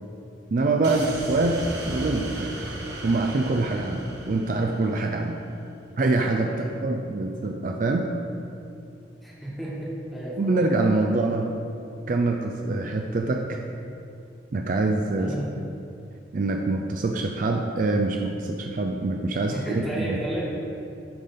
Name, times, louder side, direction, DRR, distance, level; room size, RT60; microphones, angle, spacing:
voice 1, 0.5-2.6 3.0-5.4 6.0-6.6 6.8-8.1 10.4-11.5 12.1-13.6 14.5-15.3 16.3-20.2, right 2 dB, 45° right, 3 dB, 0.4 m, -25 dB
sound 1, 0.8-5.2, right 1 dB, 70° right, 1.2 m, -36 dB
voice 2, 6.5-6.8 9.2-10.4 15.2-15.5 19.5-20.4, right 1 dB, ahead, -8 dB, 1.8 m, -32 dB
10.5 x 3.8 x 5.1 m, 2.5 s
head